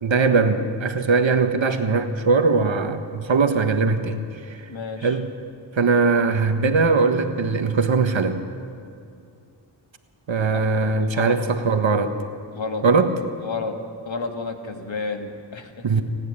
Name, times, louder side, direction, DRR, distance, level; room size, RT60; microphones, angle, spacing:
voice 1, 0.0-4.6 5.0-5.3 5.7-8.4 10.3-12.2 12.8-13.1 15.8-16.0, right 4 dB, 70° right, 7 dB, 1.6 m, -20 dB
voice 2, 4.7-5.2 11.1-11.4 12.5-12.9 13.4-13.8 14.1-15.9, left 4 dB, 70° left, 4 dB, 2.3 m, -30 dB
29.5 x 10.5 x 8.9 m, 2.5 s
cardioid pair, 50°, 47 cm